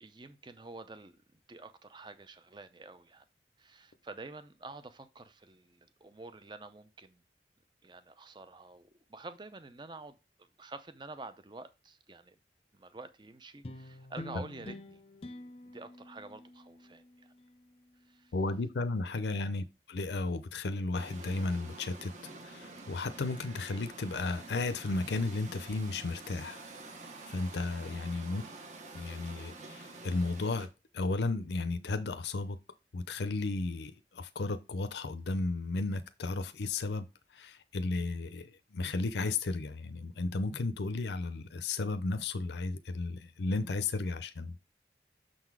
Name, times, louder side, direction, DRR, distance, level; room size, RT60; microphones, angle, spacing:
voice 1, 0.0-3.2 3.6-7.2 7.8-12.4 12.7-15.0 15.7-17.3 18.0-18.3 19.3-19.5 28.1-28.4, right 3 dB, 25° right, 0.5 m, -49 dB
sound 1, 13.6-18.3, left 2 dB, 35° left, 0.6 m, -48 dB
voice 2, 18.3-22.1 22.4-26.6 27.3-28.4 28.9-30.7 30.9-32.6 32.9-37.1 37.3-44.5, left 3 dB, 75° left, 0.5 m, -34 dB
sound 2, 21.0-30.7, right 3 dB, 40° right, 1.0 m, -48 dB
6.4 x 3.9 x 4.6 m
head